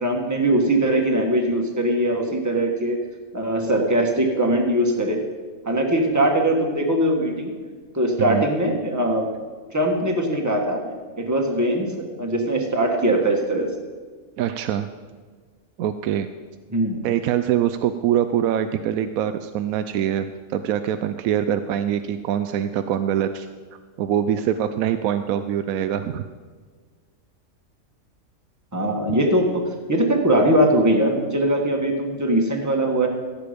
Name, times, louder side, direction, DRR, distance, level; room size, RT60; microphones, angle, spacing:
voice 1, 0.0-3.0 3.3-5.3 5.6-7.5 7.9-9.3 9.7-13.7 16.7-17.0 28.7-33.1, right 1 dB, 15° right, 2 dB, 1.4 m, -21 dB
voice 2, 14.4-14.9 15.8-16.3 17.0-23.5 23.7-26.2, right 10 dB, 80° right, 9 dB, 1.0 m, -24 dB
15.5 x 8.4 x 5.1 m, 1.5 s
omnidirectional pair, 1.5 m